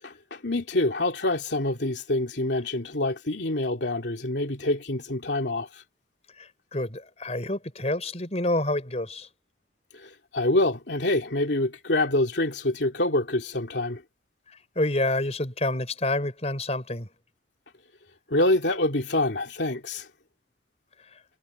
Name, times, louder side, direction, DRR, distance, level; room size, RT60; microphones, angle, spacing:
voice 1, 0.0-5.8 9.9-14.0 18.3-20.1, left 2 dB, 80° left, 2.7 m, -26 dB
voice 2, 6.4-9.3 14.5-17.1 21.1-21.2, left 1 dB, 40° left, 5.1 m, -28 dB
head